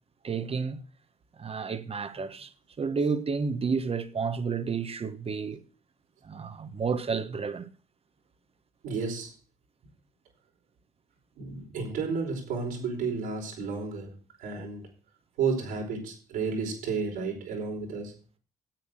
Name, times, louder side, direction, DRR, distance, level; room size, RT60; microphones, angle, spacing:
voice 1, 0.2-0.8 1.4-2.5 2.8-5.6 6.2-7.7 14.6-14.7, right 5 dB, 45° right, 1.5 m, -31 dB
voice 2, 8.8-9.3 11.4-14.9 15.4-18.1, right 5 dB, 80° right, 4.8 m, -32 dB
9.1 x 8.7 x 6.5 m
supercardioid pair, 50°, 14 cm